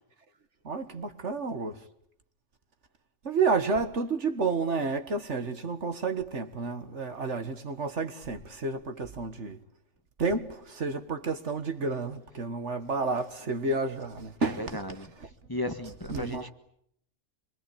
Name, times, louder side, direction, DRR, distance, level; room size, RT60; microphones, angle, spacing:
voice 1, 0.6-1.8 3.2-9.6 10.2-14.8 16.1-16.5, right 4 dB, 60° right, 1.9 m, -30 dB
voice 2, 14.4-15.1 15.5-16.5, left 1 dB, 15° left, 1.5 m, -35 dB
26.5 x 24.0 x 8.6 m
omnidirectional pair, 1.4 m